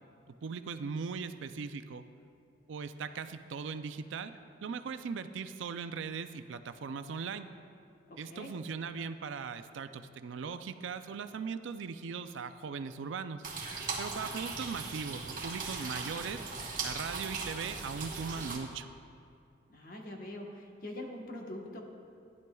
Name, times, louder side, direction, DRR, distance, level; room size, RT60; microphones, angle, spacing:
voice 1, 0.4-2.0 2.7-7.5 8.2-13.4 14.0-16.4 16.8-18.9, right 5 dB, 80° right, 10 dB, 0.4 m, -39 dB
voice 2, 8.1-8.5 19.7-21.8, left 1 dB, 45° left, 0 dB, 1.1 m, -43 dB
rain in pipes, 13.4-18.6, right 4 dB, 45° right, 1.3 m, -39 dB
15.0 x 10.5 x 2.3 m, 2.4 s
head